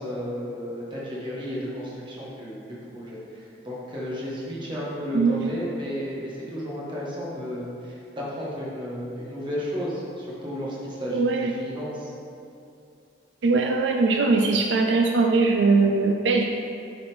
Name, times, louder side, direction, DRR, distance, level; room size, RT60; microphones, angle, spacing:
voice 1, 0.0-2.6 2.9-12.1, equal, 25° right, -6 dB, 1.7 m, -33 dB
voice 2, 5.1-5.5 11.1-11.5 13.4-16.4, right 3 dB, 75° right, 3 dB, 0.4 m, -21 dB
7.7 x 4.2 x 5.2 m, 2.6 s
head